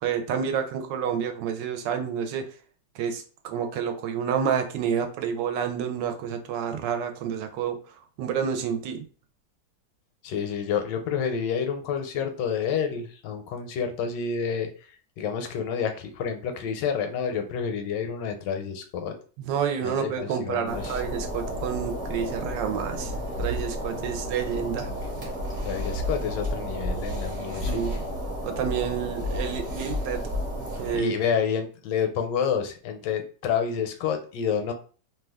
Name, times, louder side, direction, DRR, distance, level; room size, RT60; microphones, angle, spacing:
voice 1, 0.0-2.5 2.9-7.8 8.2-9.0 19.4-23.1 23.4-24.9 27.7-28.0 28.4-30.2 30.8-31.1, right 7 dB, 85° right, 7 dB, 1.3 m, -29 dB
voice 2, 10.2-14.7 15.2-19.1 19.8-21.0 25.6-27.8 30.9-34.7, left 7 dB, 80° left, 6 dB, 1.2 m, -29 dB
sound 1, 20.7-31.0, equal, 30° right, 0.9 m, -32 dB
3.0 x 2.3 x 3.4 m, 0.40 s
omnidirectional pair, 1.9 m